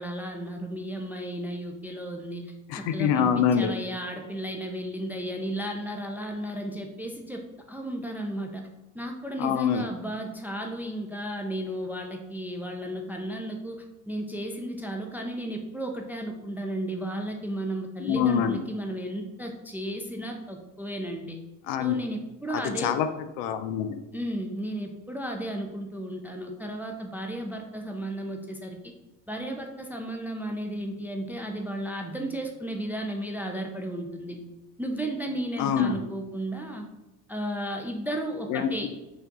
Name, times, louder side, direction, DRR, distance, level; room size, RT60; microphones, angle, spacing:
voice 1, 0.0-8.7 8.9-21.4 21.8-23.0 24.1-28.8 29.3-34.4 34.8-36.9 37.3-38.9, right 1 dB, 5° right, 2 dB, 0.4 m, -34 dB
voice 2, 2.7-3.7 9.4-9.8 18.0-18.6 21.7-21.9 22.5-24.0 35.6-36.0 38.5-38.9, left 8 dB, 60° left, 10 dB, 0.5 m, -25 dB
4.4 x 2.6 x 3.6 m, 1.0 s
hypercardioid pair, 65°, 45 cm